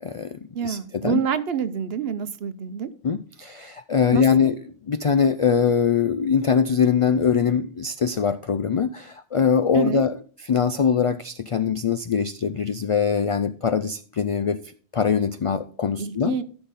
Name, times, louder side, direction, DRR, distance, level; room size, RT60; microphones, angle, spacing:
voice 1, 0.0-1.2 3.0-4.6 4.9-14.6 14.9-16.4, left 6 dB, 60° left, 12 dB, 0.3 m, -22 dB
voice 2, 0.5-2.9 4.1-4.2 9.7-10.0 16.0-16.4, right 8 dB, 70° right, 13 dB, 1.0 m, -27 dB
13.5 x 6.0 x 4.0 m, 0.43 s
omnidirectional pair, 1.1 m